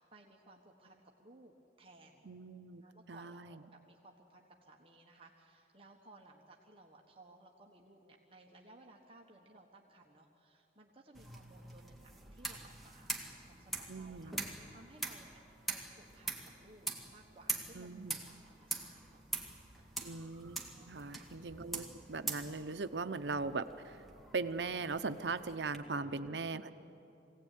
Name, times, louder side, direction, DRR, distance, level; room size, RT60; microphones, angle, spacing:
voice 1, 0.0-2.3 2.8-3.4 3.7-13.1 13.5-15.4 15.7-17.9 18.2-19.3 19.8-20.1 21.1-21.3, right 2 dB, 30° right, 0 dB, 1.4 m, -60 dB
voice 2, 2.3-2.8 3.1-3.5 13.9-14.3 17.7-18.2 20.0-20.6 20.9-23.7 24.3-26.7, right 4 dB, 80° right, 10 dB, 0.8 m, -39 dB
sound 1, 11.1-25.8, right 3 dB, ahead, 1.8 m, -44 dB
23.5 x 17.0 x 9.3 m, 2.9 s
head